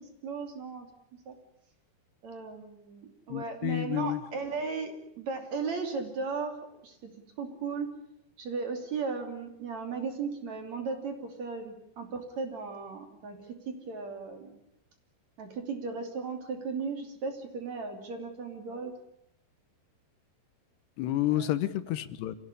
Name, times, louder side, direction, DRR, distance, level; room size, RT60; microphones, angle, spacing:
voice 1, 0.2-0.9 1.3-1.4 2.2-4.9 5.2-6.6 6.8-7.0 7.4-7.9 8.4-14.6 15.4-18.9 21.3-21.5, right 4 dB, 45° right, 5 dB, 3.7 m, -36 dB
voice 2, 3.3-4.2 21.0-22.4, left 13 dB, 90° left, 13 dB, 3.3 m, -30 dB
26.5 x 16.0 x 9.9 m, 0.79 s
omnidirectional pair, 4.8 m